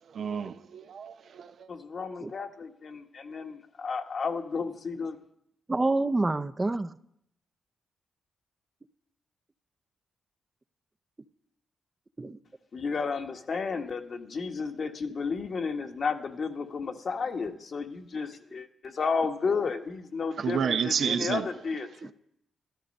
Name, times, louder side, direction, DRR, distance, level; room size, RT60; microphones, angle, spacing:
voice 1, 0.1-1.7 20.4-21.5, right 7 dB, 65° right, 0.7 m, -30 dB
voice 2, 1.7-5.2 12.7-22.1, left 5 dB, 55° left, 1.4 m, -32 dB
voice 3, 5.7-6.9 12.2-12.4 21.0-21.3, right 2 dB, 25° right, 0.7 m, -28 dB
13.0 x 13.0 x 5.4 m
supercardioid pair, 55°, 0 cm